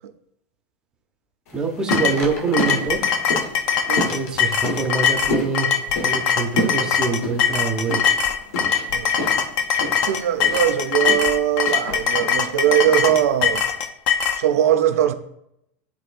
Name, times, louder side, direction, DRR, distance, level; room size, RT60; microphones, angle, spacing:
sound 1, 1.5-13.8, equal, 70° left, 1.4 m, -30 dB
voice 1, 1.5-3.2 4.1-8.1, right 4 dB, 10° right, 0.6 m, -25 dB
sound 2, 1.9-14.4, left 7 dB, 40° left, 0.5 m, -22 dB
voice 2, 10.0-13.7 14.4-15.1, right 11 dB, 70° right, 0.6 m, -20 dB
11.0 x 3.6 x 2.5 m
supercardioid pair, 175°, 8 cm